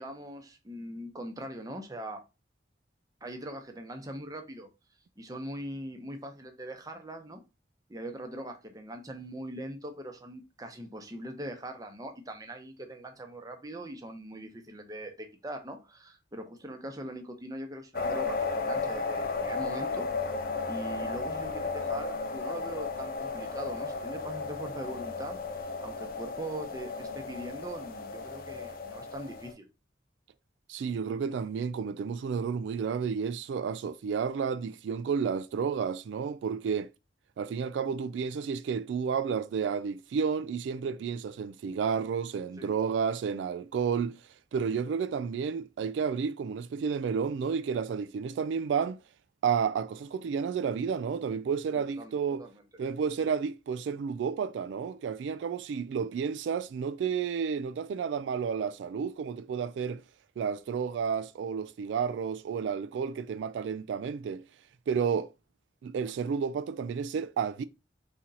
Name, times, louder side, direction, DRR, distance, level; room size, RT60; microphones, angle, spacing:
voice 1, 0.0-2.2 3.2-4.7 5.2-7.4 7.9-20.1 20.7-29.7 42.6-42.7 51.7-52.5, right 1 dB, 20° right, 0.8 m, -41 dB
sound 1, 17.9-29.5, left 4 dB, 55° left, 0.6 m, -34 dB
voice 2, 30.7-36.9 37.4-44.2 44.5-49.0 49.4-52.4 52.8-60.0 60.4-64.4 64.9-65.3 65.8-67.6, right 6 dB, 90° right, 0.3 m, -31 dB
4.3 x 2.8 x 3.8 m
head